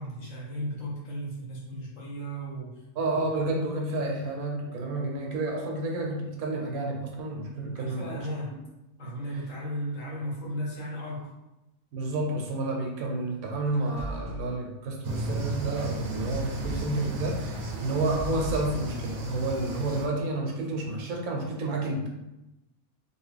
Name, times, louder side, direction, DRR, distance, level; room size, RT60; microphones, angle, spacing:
voice 1, 0.0-2.8 7.7-8.5 9.0-11.3, equal, 60° left, -5 dB, 1.4 m, -35 dB
voice 2, 3.0-8.2 11.9-22.1, right 2 dB, 80° right, 1 dB, 1.1 m, -30 dB
sound 1, 13.7-14.5 16.3-16.9 17.9-18.7, right 2 dB, 5° right, 0.9 m, -38 dB
sound 2, 15.0-20.1, right 1 dB, 65° right, 0.8 m, -34 dB
2.9 x 2.5 x 3.2 m, 0.95 s
omnidirectional pair, 1.5 m